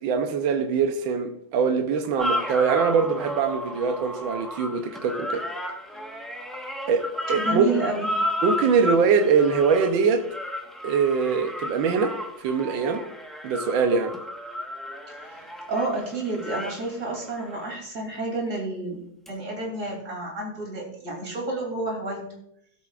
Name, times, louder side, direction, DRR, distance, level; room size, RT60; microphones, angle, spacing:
voice 1, 0.0-5.5 6.9-7.0 7.3-7.7 8.4-10.2 10.8-13.0 13.4-14.1, right 5 dB, 80° right, 6 dB, 1.6 m, -23 dB
sound 1, 2.2-17.7 19.3-19.4, left 1 dB, ahead, 0.9 m, -33 dB
voice 2, 7.3-8.1 15.2-19.0 19.3-22.2, right 2 dB, 40° right, 0 dB, 3.3 m, -30 dB
16.0 x 8.4 x 2.5 m, 0.71 s
omnidirectional pair, 2.1 m